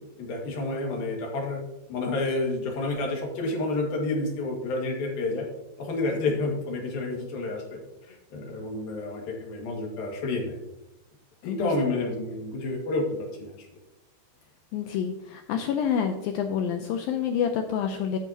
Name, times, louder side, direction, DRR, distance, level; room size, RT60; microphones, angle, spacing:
voice 1, 0.2-1.6 1.9-5.5 5.8-7.8 8.1-10.6 11.4-13.5, left 2 dB, 60° left, 0 dB, 3.5 m, -29 dB
voice 2, 11.4-11.7 14.7-18.2, left 8 dB, 90° left, 5 dB, 2.0 m, -28 dB
12.5 x 9.1 x 2.9 m, 0.92 s
omnidirectional pair, 4.9 m